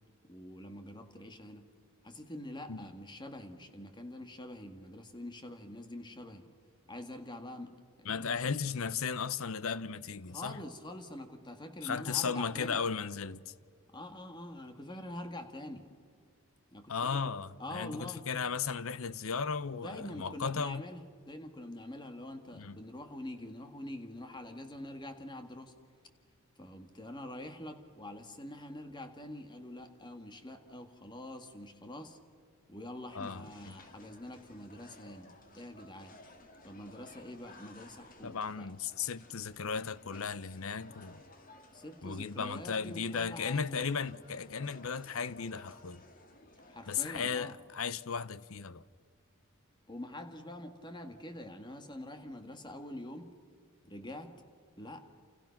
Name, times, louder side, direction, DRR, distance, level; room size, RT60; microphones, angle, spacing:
voice 1, 0.2-1.7 2.0-6.5 6.9-8.3 10.3-12.8 13.9-15.9 16.7-17.3 17.6-18.3 19.7-25.7 26.6-32.2 32.7-36.1 36.6-38.7 41.7-44.0 46.7-47.6 49.9-53.3 53.8-54.4 54.8-55.0, left 1 dB, 20° left, 1.9 m, -45 dB
voice 2, 8.1-10.6 11.8-13.5 16.9-20.8 22.6-22.8 33.1-33.5 38.2-41.2 42.0-46.0 46.9-48.8, left 6 dB, 70° left, 0.7 m, -35 dB
sound 1, 33.1-47.3, left 2 dB, 40° left, 2.1 m, -57 dB
29.5 x 29.0 x 5.9 m
head